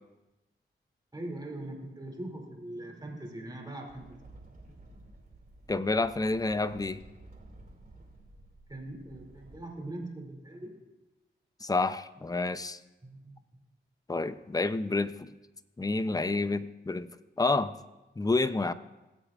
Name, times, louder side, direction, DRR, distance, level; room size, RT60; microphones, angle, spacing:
voice 1, 1.1-4.2 4.7-5.0 8.7-10.7 13.0-13.4, right 1 dB, 20° right, 0 dB, 2.7 m, -41 dB
sound 1, 3.9-9.6, right 2 dB, 40° right, 2.6 m, -53 dB
voice 2, 5.7-7.0 11.6-12.8 14.1-15.3 15.8-17.1 17.4-17.7 18.2-18.7, left 3 dB, 15° left, 13 dB, 0.6 m, -29 dB
19.5 x 8.2 x 2.5 m, 1.0 s
cardioid pair, 50°, 21 cm